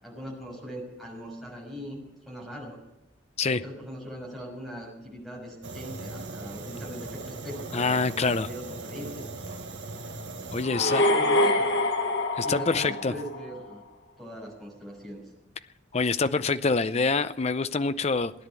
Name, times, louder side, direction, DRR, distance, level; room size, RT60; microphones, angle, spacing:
voice 1, 0.0-2.8 3.4-9.3 10.6-11.7 12.4-13.8 14.2-15.3, equal, ahead, 6.2 m, -40 dB
Fire, 5.6-10.6, right 2 dB, 65° right, 1.3 m, -39 dB
voice 2, 7.7-8.5 10.5-11.0 12.4-13.1 15.9-18.3, left 4 dB, 35° left, 0.6 m, -25 dB
sound 1, 10.6-13.7, left 1 dB, 65° left, 1.5 m, -25 dB
17.0 x 10.5 x 8.2 m
head